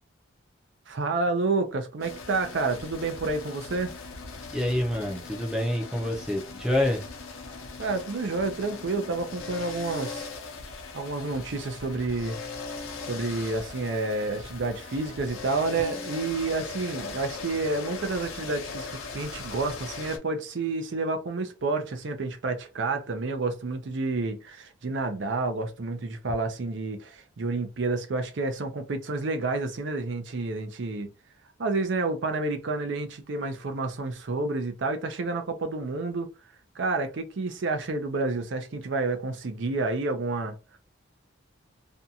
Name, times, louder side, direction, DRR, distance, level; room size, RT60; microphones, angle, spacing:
voice 1, 0.9-3.9 7.8-10.3 10.9-12.4 13.1-31.1 31.6-36.3 36.8-40.8, right 3 dB, 65° right, 0.5 m, -29 dB
sound 1, 2.0-20.2, left 4 dB, 90° left, 0.6 m, -39 dB
voice 2, 4.5-7.1, left 1 dB, 5° right, 0.5 m, -27 dB
2.6 x 2.3 x 2.7 m
head